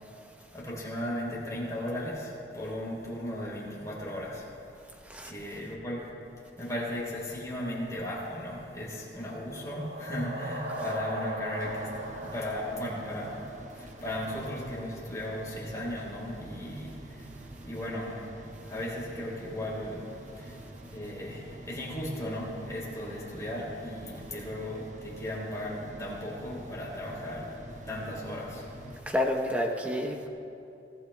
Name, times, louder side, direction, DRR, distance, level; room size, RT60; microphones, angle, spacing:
voice 1, 0.5-6.1 6.6-17.3 17.6-18.3 18.6-27.6 27.9-28.7, left 1 dB, 20° left, -5 dB, 3.6 m, -36 dB
sound 1, 9.2-14.1, right 1 dB, 75° right, 1.7 m, -39 dB
sound 2, 11.6-29.0, right 1 dB, 40° right, 0.7 m, -47 dB
voice 2, 29.1-30.3, left 1 dB, 10° right, 1 dB, 0.9 m, -29 dB
22.5 x 16.0 x 2.3 m, 2.8 s
head